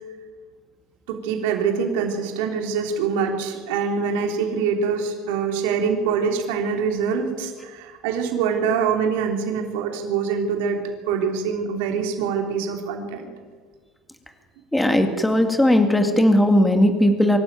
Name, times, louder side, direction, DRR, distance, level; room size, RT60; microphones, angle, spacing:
voice 1, 1.1-10.8 11.1-13.3, right 6 dB, 85° right, 2 dB, 3.3 m, -24 dB
voice 2, 14.7-17.4, left 1 dB, 5° left, 5 dB, 2.0 m, -17 dB
24.0 x 13.0 x 9.0 m, 1.5 s
supercardioid pair, 115°, 0 cm